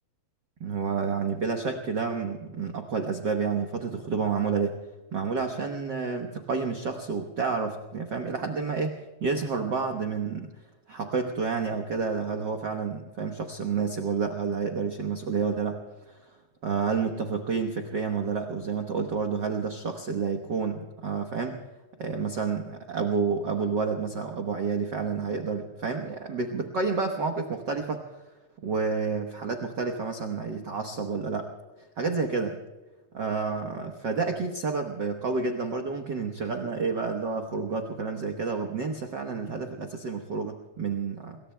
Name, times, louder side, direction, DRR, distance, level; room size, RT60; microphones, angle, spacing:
voice 1, 0.6-4.7 5.1-10.5 10.9-15.8 16.1-16.2 16.6-21.6 22.0-28.0 28.6-31.5 32.0-32.6 33.1-41.4, right 5 dB, 55° right, 4 dB, 1.2 m, -29 dB
28.5 x 22.0 x 2.2 m, 1.2 s
omnidirectional pair, 3.4 m